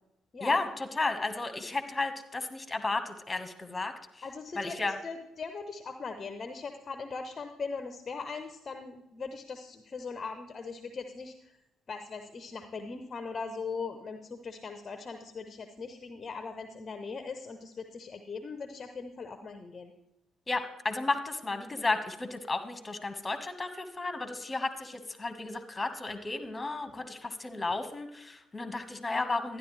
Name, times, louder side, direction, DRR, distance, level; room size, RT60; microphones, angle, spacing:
voice 1, 0.4-4.2 4.6-4.9 20.5-29.6, left 3 dB, 25° left, 8 dB, 1.5 m, -33 dB
voice 2, 4.2-11.6 11.9-19.9 26.9-27.0, left 4 dB, 40° left, 7 dB, 0.8 m, -40 dB
12.0 x 10.5 x 3.3 m, 0.88 s
hypercardioid pair, 55°, 0 cm